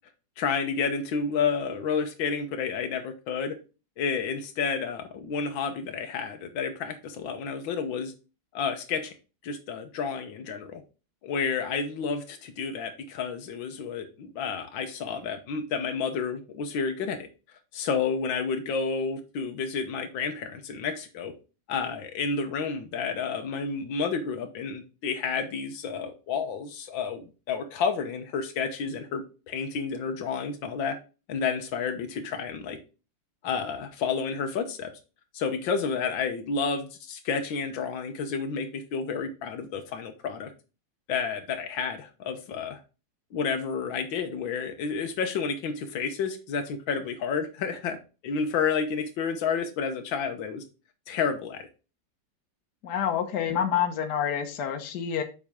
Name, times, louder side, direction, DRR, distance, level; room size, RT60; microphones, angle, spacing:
voice 1, 0.4-3.6 4.0-8.1 8.5-9.1 9.4-10.8 11.2-17.3 17.7-21.3 21.7-31.0 31.3-32.8 33.4-34.9 35.3-40.5 41.1-42.8 43.3-48.0 48.2-50.6 51.1-51.7, left 5 dB, 90° left, 7 dB, 1.8 m, -30 dB
voice 2, 52.8-55.2, left 8 dB, 65° left, 6 dB, 1.5 m, -28 dB
7.3 x 5.2 x 3.6 m, 0.32 s
omnidirectional pair, 2.0 m